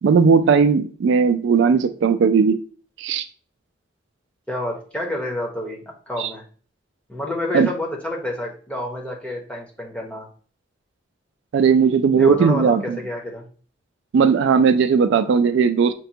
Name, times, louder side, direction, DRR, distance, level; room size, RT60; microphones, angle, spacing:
voice 1, 0.0-2.6 3.0-3.3 6.2-6.3 7.5-7.7 11.5-13.0 14.1-15.9, right 5 dB, 65° right, 0.3 m, -17 dB
voice 2, 4.5-6.4 7.1-10.3 12.1-13.5, left 1 dB, 5° left, 0.8 m, -29 dB
5.9 x 2.2 x 2.7 m
head